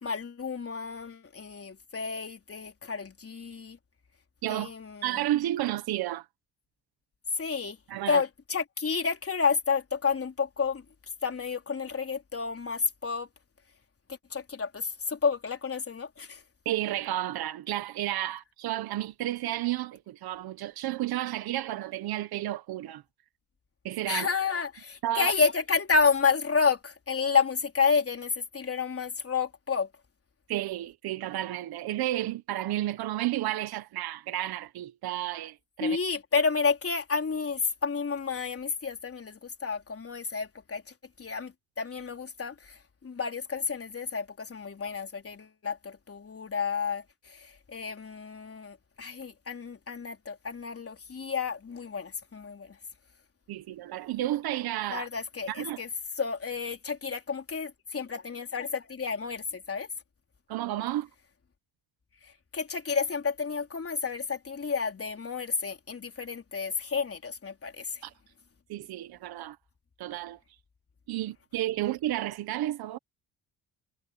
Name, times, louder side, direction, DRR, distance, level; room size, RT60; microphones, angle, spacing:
voice 1, 0.0-3.8 4.5-5.3 7.3-7.8 8.1-10.8 11.2-13.3 14.3-16.4 24.1-29.9 35.8-40.8 41.2-52.8 54.9-55.9 56.2-59.9 62.2-68.1, left 5 dB, 40° left, 3.9 m, -30 dB
voice 2, 4.4-4.7 5.0-6.3 7.9-8.2 16.6-23.0 23.8-24.3 25.0-25.3 30.5-36.0 53.5-55.1 55.5-55.8 60.5-61.1 68.0-68.1 68.7-69.6 70.0-70.4 71.1-73.0, right 14 dB, 80° right, 1.5 m, -32 dB
supercardioid pair, 65°, 37 cm